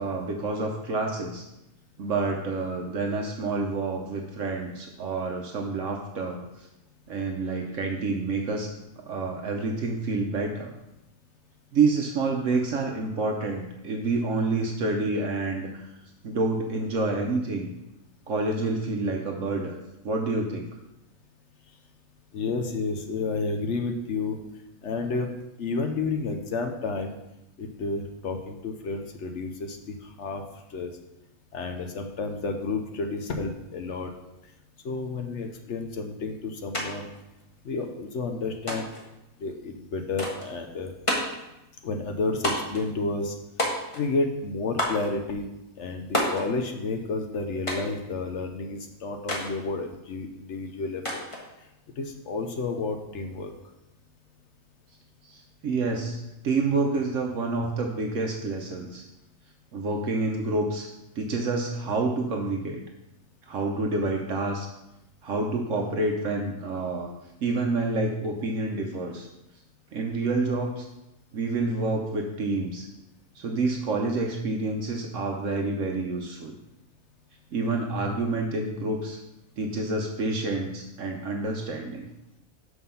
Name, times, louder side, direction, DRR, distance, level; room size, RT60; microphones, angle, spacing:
voice 1, 0.0-1.4 2.0-6.7 7.1-8.7 9.1-10.7 11.7-15.9 16.2-17.7 18.3-19.8 20.0-20.7 55.2-59.1 59.7-60.9 61.2-62.8 63.5-64.7 65.2-67.1 67.4-69.3 69.9-70.9 71.3-72.9 73.3-76.5 77.5-79.2 79.6-82.1, right 3 dB, 65° right, 2 dB, 1.1 m, -28 dB
voice 2, 22.3-24.4 24.8-25.3 25.6-27.2 27.6-30.9 31.5-34.1 34.4-34.5 34.8-37.1 37.6-38.9 39.4-40.9 41.8-43.3 43.6-45.5 45.8-51.2 51.6-51.7 52.0-53.5, left 3 dB, 60° left, 5 dB, 1.0 m, -31 dB
sound 1, 36.7-36.9 37.1-37.9 38.7-39.1 40.2-40.5 41.1-41.4 42.4-42.8 43.6-44.1 44.8-45.1 46.1-46.5 47.7-48.0 49.3-49.5 51.1-51.5, left 1 dB, 25° left, 1.3 m, -29 dB
5.9 x 5.7 x 5.6 m, 0.92 s
omnidirectional pair, 1.5 m